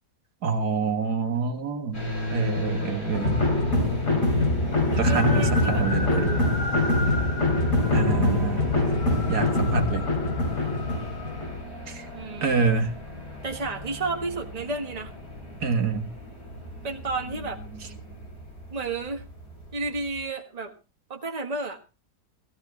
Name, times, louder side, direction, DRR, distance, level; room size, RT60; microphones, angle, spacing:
voice 1, 0.4-3.4 5.0-6.4 7.9-8.7 9.3-10.0 11.9-12.1 12.4-13.0 15.6-16.1, right 5 dB, 70° right, 6 dB, 1.9 m, -26 dB
sound 1, 1.9-20.2, left 1 dB, 70° left, 6.0 m, -37 dB
voice 2, 2.2-2.8 4.9-6.5 8.3-8.6 12.1-12.6 13.4-15.1 16.8-17.6 18.7-19.2 19.7-20.7 21.1-21.8, right 3 dB, 25° right, 4 dB, 1.6 m, -32 dB
sound 2, 3.1-11.6, left 2 dB, 50° left, 3.4 m, -24 dB
16.0 x 15.5 x 3.2 m, 0.29 s
omnidirectional pair, 1.8 m